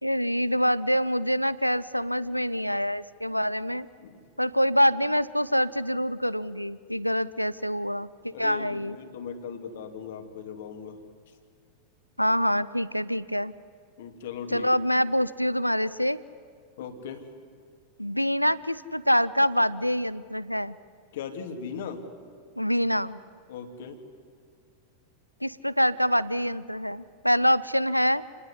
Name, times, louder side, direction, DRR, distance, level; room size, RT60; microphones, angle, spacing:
voice 1, 0.0-3.9 4.4-9.0 12.2-13.5 14.5-16.2 18.0-20.8 22.6-23.2 25.4-28.2, equal, 90° left, 18 dB, 0.7 m, -25 dB
voice 2, 8.3-11.0 14.0-14.7 16.8-17.3 21.1-22.1 23.5-24.0, left 7 dB, 55° left, 6 dB, 2.7 m, -38 dB
28.5 x 19.5 x 9.9 m, 2.3 s
figure-of-eight pair, 90°, 0 cm